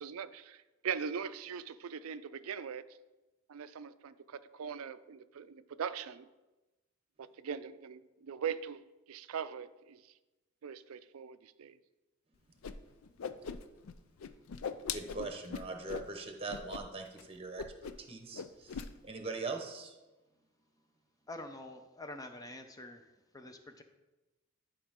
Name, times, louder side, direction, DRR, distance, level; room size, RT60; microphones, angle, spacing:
voice 1, 0.0-2.9 3.5-6.3 7.2-10.1 10.6-11.8, right 7 dB, 80° right, 13 dB, 0.4 m, -41 dB
Whoosh swoosh swish, 12.6-12.7 13.0-13.9 14.2-16.1 16.5-16.8 17.1-17.2 17.6-18.1 18.3-18.9, left 6 dB, 70° left, 0.4 m, -40 dB
voice 2, 14.9-17.6 18.0-19.9, right 3 dB, 25° right, 4 dB, 1.0 m, -41 dB
voice 3, 21.3-23.0 23.3-23.8, left 1 dB, 15° left, 7 dB, 0.6 m, -46 dB
11.5 x 5.1 x 3.6 m, 1.1 s
head